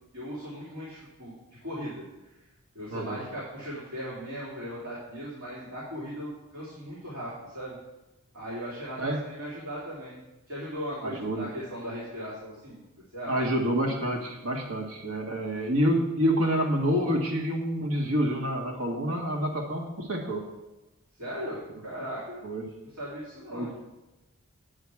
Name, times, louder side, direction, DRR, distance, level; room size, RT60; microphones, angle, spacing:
voice 1, 0.1-1.3 1.6-2.4 2.7-7.7 8.3-10.2 10.5-12.8 13.1-13.3 15.3-15.6 21.2-22.4 22.8-23.7, equal, 70° right, -8 dB, 3.1 m, -38 dB
voice 2, 2.9-3.2 9.0-9.2 11.0-11.5 13.3-20.4 22.4-22.6 23.5-23.7, equal, 85° right, 1 dB, 1.5 m, -27 dB
8.6 x 8.6 x 4.8 m, 1.0 s
head